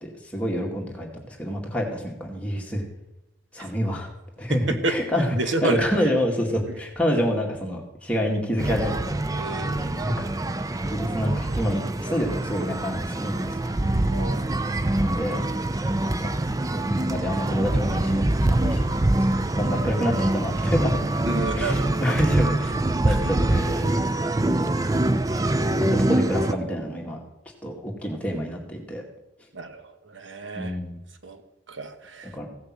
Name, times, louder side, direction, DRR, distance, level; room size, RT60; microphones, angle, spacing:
voice 1, 0.0-2.8 3.5-4.1 4.4-9.1 10.0-10.3 10.8-13.7 14.6-15.4 16.0-16.3 16.7-18.9 19.5-21.0 21.5-22.8 23.0-24.0 24.4-24.9 25.8-27.2 27.6-29.0 30.5-31.0 32.3-32.5, equal, 5° left, -1 dB, 2.2 m, -27 dB
voice 2, 4.5-5.0 5.3-5.8 9.3-10.1 14.1-14.4 21.3-22.0 23.0-23.3 29.5-30.8 31.2-31.4 31.7-32.4, right 2 dB, 70° right, 7 dB, 1.2 m, -30 dB
sound 1, 8.6-26.5, right 1 dB, 15° right, 0.4 m, -25 dB
16.0 x 6.6 x 7.5 m, 0.91 s
head